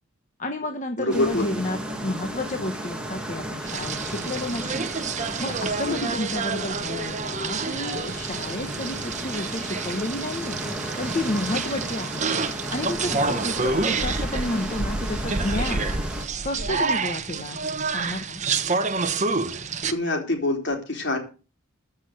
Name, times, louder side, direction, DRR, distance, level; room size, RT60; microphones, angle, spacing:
voice 1, 0.4-4.9 5.4-10.6 11.0-12.3 12.7-15.9 16.4-18.4, left 1 dB, 35° left, 6 dB, 1.1 m, -31 dB
voice 2, 1.0-1.5 5.8-6.1 13.3-13.6 19.9-21.2, left 2 dB, 55° left, 3 dB, 4.2 m, -26 dB
sound 1, 1.1-16.2, right 1 dB, 5° right, 2.3 m, -34 dB
sound 2, 3.7-19.9, right 4 dB, 35° right, 1.1 m, -28 dB
14.5 x 6.3 x 8.1 m, 0.35 s
head